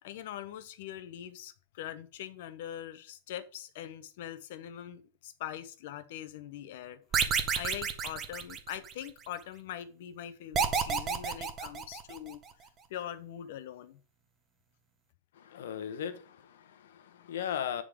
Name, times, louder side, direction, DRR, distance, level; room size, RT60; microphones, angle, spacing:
voice 1, 0.0-12.4 12.9-14.0, left 11 dB, 55° left, 0.8 m, -43 dB
sound 1, 7.1-9.1 10.5-12.3, right 6 dB, 20° right, 0.7 m, -30 dB
voice 2, 15.3-17.8, left 9 dB, 80° left, 1.0 m, -37 dB
8.6 x 3.8 x 4.9 m
supercardioid pair, 170°, 0 cm